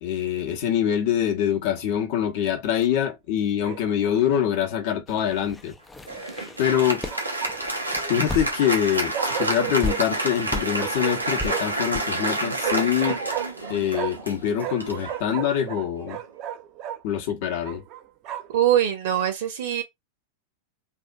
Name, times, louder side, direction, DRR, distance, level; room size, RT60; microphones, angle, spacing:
voice 1, 0.0-5.8 6.6-7.0 8.1-13.2 13.7-16.2 17.0-17.8, left 10 dB, 50° left, 0.9 m, -24 dB
Bark, 3.6-4.2 6.7-7.8 9.1-10.0 10.7-11.8 12.6-14.3 14.6-17.0 17.6-18.6, right 11 dB, 40° right, 0.6 m, -34 dB
sound 1, 5.1-8.9 9.2-9.3 9.8-10.0 10.5-10.7 11.4-11.5 11.9-12.0, left 2 dB, 10° left, 0.4 m, -34 dB
Applause, 6.1-15.9, right 1 dB, 85° right, 0.8 m, -29 dB
voice 2, 18.5-19.8, right 11 dB, 55° right, 0.9 m, -22 dB
3.5 x 2.5 x 2.3 m
figure-of-eight pair, 90°, 0 cm